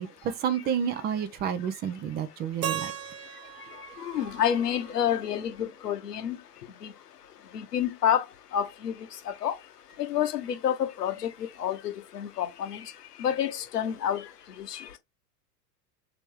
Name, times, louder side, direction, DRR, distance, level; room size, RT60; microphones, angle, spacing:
voice 1, 0.0-2.9, right 8 dB, 20° right, 0.5 m, -30 dB
Keyboard (musical), 2.6-5.6, right 9 dB, 75° right, 0.9 m, -38 dB
voice 2, 4.0-6.4 6.8-6.9 7.5-8.2 8.5-9.6 10.0-12.9 13.2-14.3 14.6-15.0, left 9 dB, 70° left, 1.0 m, -29 dB
3.4 x 3.0 x 4.7 m
figure-of-eight pair, 90°, 49 cm